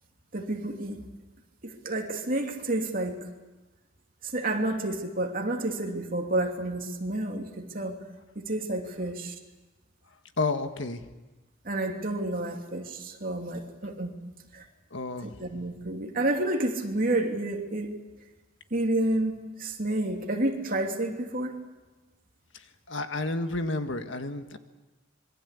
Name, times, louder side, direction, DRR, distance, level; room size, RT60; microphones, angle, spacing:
voice 1, 0.3-1.0 1.6-3.3 4.2-8.0 8.3-9.3 11.6-14.1 14.5-14.7 15.2-17.9 18.7-21.6, right 1 dB, 45° right, 2 dB, 3.0 m, -30 dB
voice 2, 10.4-11.1 14.9-15.4 22.5-24.6, left 3 dB, 65° left, 7 dB, 1.7 m, -31 dB
26.5 x 23.0 x 8.4 m, 1.1 s
head